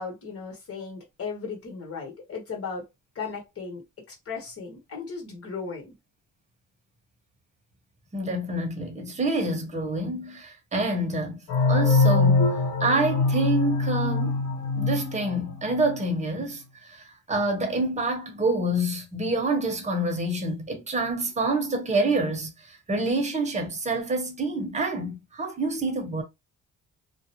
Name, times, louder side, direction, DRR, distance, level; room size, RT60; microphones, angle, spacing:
voice 1, 0.0-2.9 3.1-3.8 4.1-6.0, left 5 dB, 50° left, 1.3 m, -36 dB
voice 2, 8.1-11.4 11.7-12.5 12.8-14.4 14.7-26.2, right 2 dB, 25° right, 0.9 m, -27 dB
sound 1, 11.5-16.0, left 3 dB, 85° left, 0.8 m, -23 dB
2.5 x 2.0 x 2.9 m
cardioid pair, 90°, 30 cm